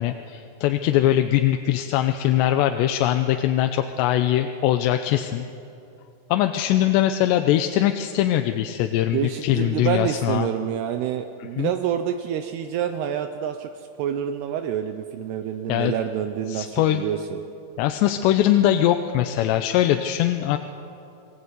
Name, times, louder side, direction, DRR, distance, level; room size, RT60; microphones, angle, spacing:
voice 1, 0.0-5.4 6.3-10.5 11.6-11.7 15.7-15.9 16.5-17.0 17.8-20.6, left 12 dB, 90° left, 7 dB, 3.0 m, -21 dB
voice 2, 9.1-17.4, right 9 dB, 80° right, 7 dB, 2.7 m, -27 dB
28.5 x 20.0 x 8.2 m, 2.8 s
omnidirectional pair, 4.9 m